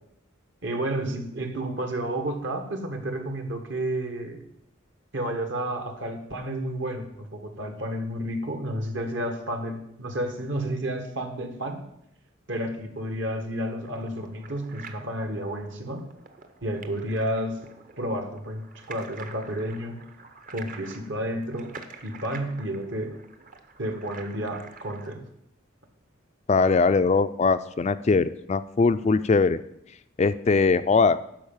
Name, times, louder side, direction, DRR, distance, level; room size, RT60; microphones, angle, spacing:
voice 1, 0.6-4.5 5.1-11.8 12.5-16.1 16.6-17.6 18.0-20.0 20.5-21.7 22.0-23.2 23.8-25.3, right 1 dB, 65° right, 5 dB, 1.7 m, -31 dB
sound 1, 13.8-25.1, right 4 dB, 40° right, 0.9 m, -47 dB
voice 2, 26.5-29.6 30.2-31.2, left 4 dB, 35° left, 12 dB, 0.3 m, -21 dB
11.5 x 5.2 x 7.3 m, 0.76 s
head